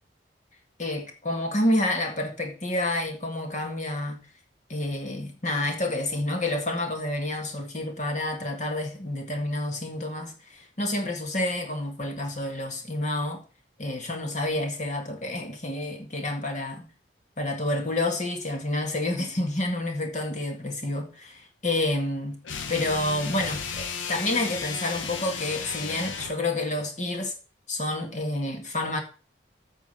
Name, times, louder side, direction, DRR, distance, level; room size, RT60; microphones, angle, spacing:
voice 1, 0.8-4.2 4.7-13.4 13.8-16.8 17.4-22.4 22.7-27.3 27.7-29.0, left 1 dB, 40° left, 1.9 m, -29 dB
sound 1, 22.4-26.4, left 5 dB, 80° left, 1.0 m, -34 dB
8.8 x 5.0 x 7.0 m
head